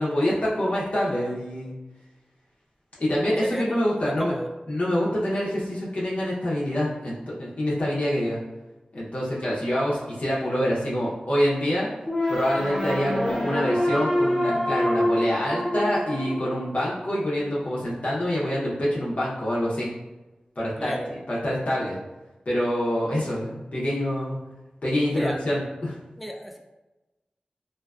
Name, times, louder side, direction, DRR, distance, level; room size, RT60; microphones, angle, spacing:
voice 1, 0.0-1.7 3.0-4.3 4.7-8.4 8.9-11.9 12.3-19.9 20.6-20.9 21.3-22.0 22.5-24.4 24.8-25.9, equal, 55° left, -6 dB, 0.6 m, -26 dB
voice 2, 3.4-4.5 20.8-21.1 25.0-25.4 26.2-26.6, equal, ahead, 2 dB, 0.4 m, -33 dB
sound 1, 12.1-17.1, left 1 dB, 20° left, 0.9 m, -26 dB
2.5 x 2.2 x 2.3 m, 1.1 s
cardioid pair, 45°, 3 cm